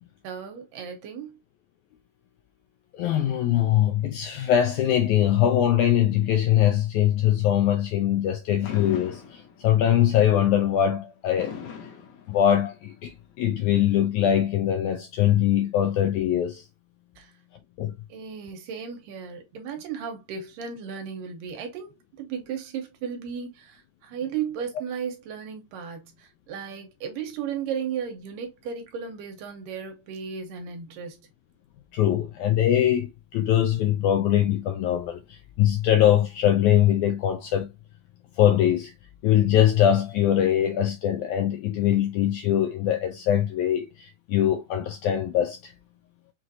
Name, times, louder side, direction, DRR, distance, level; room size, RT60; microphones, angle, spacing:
voice 1, 0.2-1.4 17.2-17.3 18.1-31.3, right 7 dB, 80° right, 2.6 m, -35 dB
voice 2, 2.9-11.5 12.3-16.6 17.8-17.9 31.9-37.7 38.4-38.9 39.2-45.7, left 11 dB, 85° left, 1.7 m, -22 dB
Fireworks, 8.6-9.9 11.4-12.9, left 7 dB, 65° left, 2.2 m, -39 dB
6.0 x 2.5 x 2.7 m
omnidirectional pair, 3.9 m